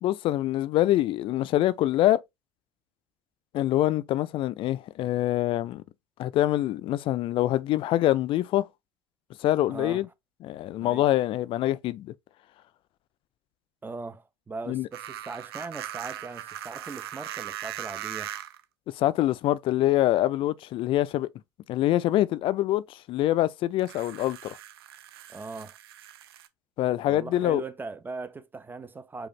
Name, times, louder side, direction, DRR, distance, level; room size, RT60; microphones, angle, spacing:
voice 1, 0.0-2.2 3.5-5.8 6.2-8.7 9.4-10.1 10.4-12.1 14.7-14.9 19.0-21.3 21.7-24.6 26.8-27.6, left 14 dB, 40° left, 0.4 m, -25 dB
voice 2, 9.7-10.1 10.8-11.1 13.8-18.3 25.3-25.7 27.1-29.3, right 4 dB, 15° right, 0.6 m, -39 dB
sound 1, 14.9-18.6 19.7-19.8 23.8-26.5, right 12 dB, 70° right, 0.5 m, -39 dB
4.9 x 2.4 x 3.1 m
figure-of-eight pair, 65°, 13 cm